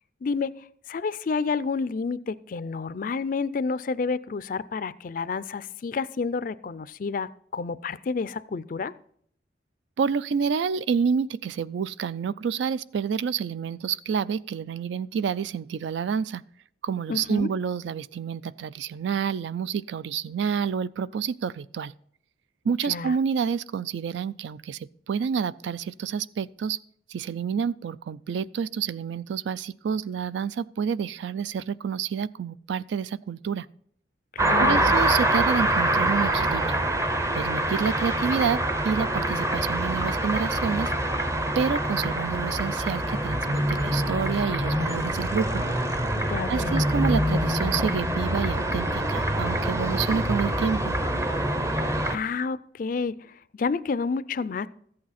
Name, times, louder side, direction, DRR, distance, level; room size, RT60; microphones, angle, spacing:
voice 1, 0.2-0.5 0.9-8.9 17.1-17.5 22.8-23.1 34.3-34.9 46.1-46.8 52.1-54.7, left 4 dB, 45° left, 17 dB, 0.4 m, -30 dB
voice 2, 10.0-16.4 16.8-21.9 22.6-26.8 27.1-33.7 34.6-36.8 37.3-40.9 41.6-45.6 46.5-51.0, right 6 dB, 70° right, 18 dB, 0.3 m, -28 dB
sound 1, 34.4-52.2, right 1 dB, 15° right, 0.6 m, -25 dB
13.5 x 8.7 x 4.2 m, 0.64 s
head